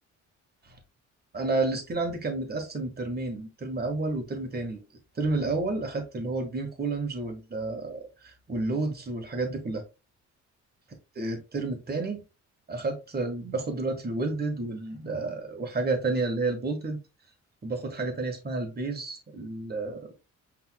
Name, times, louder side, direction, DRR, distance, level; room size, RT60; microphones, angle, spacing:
voice 1, 1.3-4.8 5.1-9.8 11.1-12.2 12.7-17.0 17.6-20.1, right 3 dB, 30° right, 1.7 m, -30 dB
5.5 x 3.7 x 2.3 m
cardioid pair, 90°, 30 cm